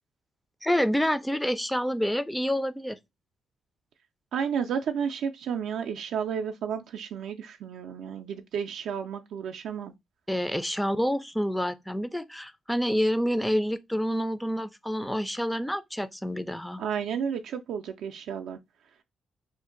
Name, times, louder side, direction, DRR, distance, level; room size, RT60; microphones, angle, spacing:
voice 1, 0.6-3.0 10.3-16.8, equal, 5° left, 0.3 m, -28 dB
voice 2, 4.3-9.9 16.8-18.6, right 7 dB, 75° right, 0.3 m, -32 dB
2.5 x 2.2 x 3.7 m
cardioid pair, 90°, 0 cm